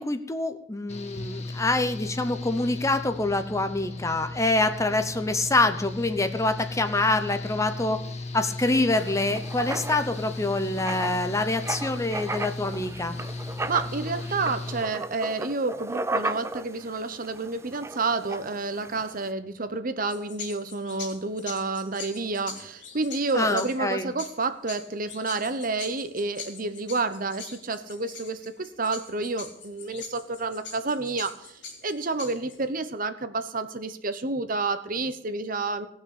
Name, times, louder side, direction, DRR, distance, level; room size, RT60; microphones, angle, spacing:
voice 1, 0.0-8.0 8.3-13.2 23.3-24.1, left 2 dB, 15° left, 9 dB, 0.8 m, -26 dB
Engine / Mechanical fan, 0.9-14.8, left 2 dB, 35° left, 1.4 m, -36 dB
Writing, 8.9-19.3, right 2 dB, 15° right, 0.5 m, -36 dB
voice 2, 13.7-35.9, right 3 dB, 50° right, 10 dB, 1.1 m, -30 dB
sound 1, 20.1-32.7, left 5 dB, 70° left, 3.2 m, -43 dB
18.0 x 6.2 x 8.6 m, 0.69 s
head